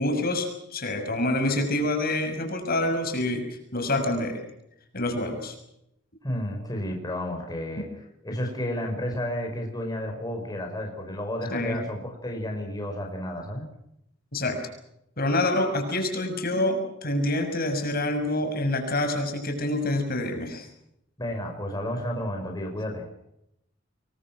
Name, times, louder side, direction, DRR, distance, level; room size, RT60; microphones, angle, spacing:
voice 1, 0.0-3.4 3.7-4.4 4.9-5.5 7.8-7.9 11.5-11.8 14.3-14.6 15.2-20.7, left 1 dB, 50° left, 6 dB, 6.5 m, -26 dB
voice 2, 6.2-7.9 8.2-13.6 21.2-23.0, left 1 dB, 20° left, 2 dB, 5.7 m, -31 dB
27.5 x 23.5 x 6.2 m, 0.80 s
head